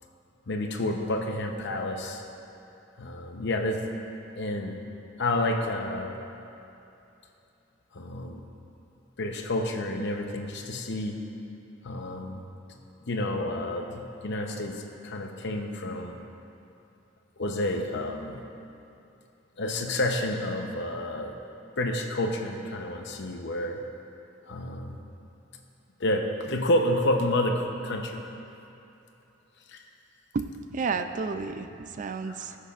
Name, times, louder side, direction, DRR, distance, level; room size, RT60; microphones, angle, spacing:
voice 1, 0.5-2.2 3.0-3.8 4.4-4.8 5.2-6.1 7.9-8.4 9.2-11.2 11.8-12.4 13.1-16.2 17.4-18.4 19.6-21.4 21.8-23.8 24.5-25.0 26.0-28.2 29.7-29.8 32.2-32.3, left 1 dB, 60° left, 3 dB, 0.8 m, -29 dB
voice 2, 30.3-32.6, right 4 dB, 40° right, 8 dB, 0.4 m, -32 dB
19.0 x 6.6 x 2.5 m, 2.9 s
head